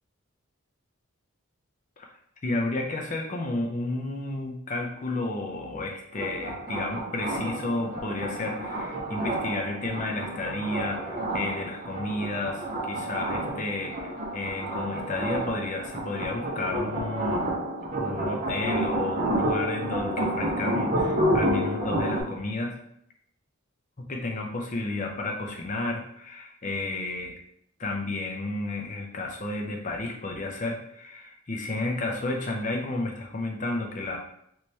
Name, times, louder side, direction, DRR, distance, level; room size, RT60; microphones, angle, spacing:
voice 1, 2.4-17.5 18.0-22.7 24.0-27.4 27.8-34.2, left 2 dB, 35° left, 2 dB, 0.5 m, -32 dB
sound 1, 6.1-22.2, right 1 dB, 35° right, 0.7 m, -30 dB
3.2 x 3.1 x 2.8 m, 0.71 s
head